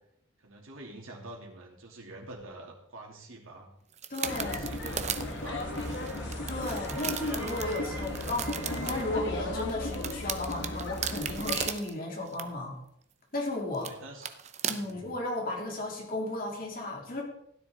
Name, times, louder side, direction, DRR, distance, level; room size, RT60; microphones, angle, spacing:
voice 1, 0.4-3.7 4.4-6.0 13.8-14.3 14.8-15.0, right 2 dB, 85° right, -1 dB, 3.0 m, -46 dB
sound 1, 3.9-9.0 9.6-11.9 12.3-12.4 13.3-13.5 13.7-13.9 14.2-14.9, right 8 dB, 35° right, 0.7 m, -36 dB
voice 2, 4.1-4.7 6.5-12.8 13.3-13.9 14.7-17.2, left 2 dB, 45° left, -1 dB, 3.3 m, -34 dB
sound 2, 4.2-11.7, left 2 dB, 60° left, 1.8 m, -36 dB
sound 3, 4.2-9.3, right 1 dB, 10° right, 1.7 m, -43 dB
16.0 x 10.0 x 3.9 m, 0.75 s
head